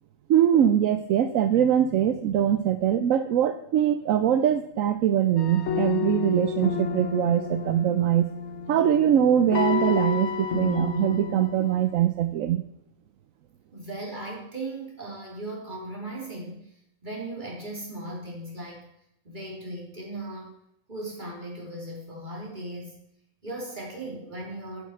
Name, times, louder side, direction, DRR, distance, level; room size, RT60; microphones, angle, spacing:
voice 1, 0.3-8.3 8.7-12.6, right 10 dB, 75° right, 10 dB, 1.0 m, -22 dB
sound 1, 5.4-12.0, left 7 dB, 55° left, 1.4 m, -30 dB
voice 2, 13.7-16.7 17.0-18.9 19.2-20.6 20.9-22.9 23.4-24.8, right 2 dB, 35° right, -2 dB, 3.5 m, -37 dB
11.5 x 10.0 x 4.6 m, 0.79 s
omnidirectional pair, 1.4 m